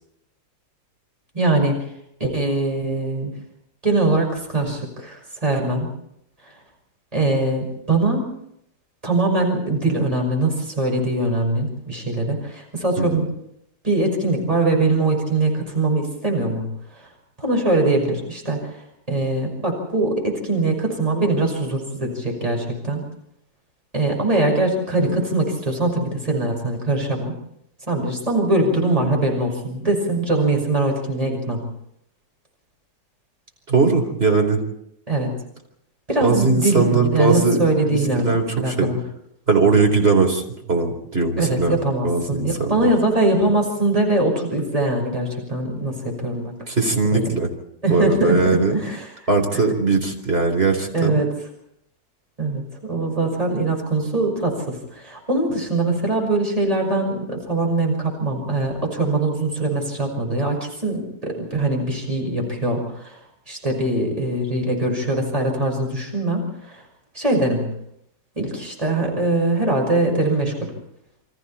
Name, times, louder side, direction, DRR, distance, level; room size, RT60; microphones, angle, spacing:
voice 1, 1.3-1.8 2.2-3.3 3.8-5.9 7.1-8.3 9.0-13.3 13.8-16.7 17.4-18.8 19.1-23.0 23.9-27.3 27.9-31.6 35.1-35.3 36.1-39.0 41.4-46.5 47.1-47.2 47.8-49.1 49.5-49.6 50.9-51.3 52.4-63.2 63.5-66.8 67.1-67.7 68.4-70.7, right 2 dB, 20° right, 1 dB, 5.9 m, -22 dB
voice 2, 33.7-34.6 36.2-38.9 39.5-40.4 40.7-41.7 42.0-42.9 46.7-47.5 47.9-48.7 49.3-51.2, right 4 dB, 35° right, 3 dB, 4.3 m, -20 dB
29.5 x 24.5 x 4.4 m, 0.76 s
omnidirectional pair, 1.7 m